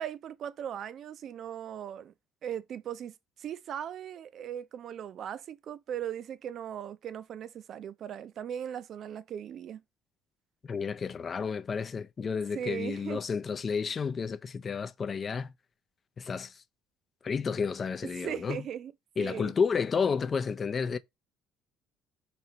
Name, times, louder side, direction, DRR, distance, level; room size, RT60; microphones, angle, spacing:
voice 1, 0.0-2.1 2.4-9.8 12.5-13.2 18.2-18.9 19.2-19.5, right 9 dB, 55° right, 0.5 m, -38 dB
voice 2, 10.6-15.5 16.2-16.6 17.2-18.6 19.2-21.0, left 5 dB, 40° left, 0.5 m, -31 dB
4.1 x 2.7 x 4.4 m
supercardioid pair, 70°, 0 cm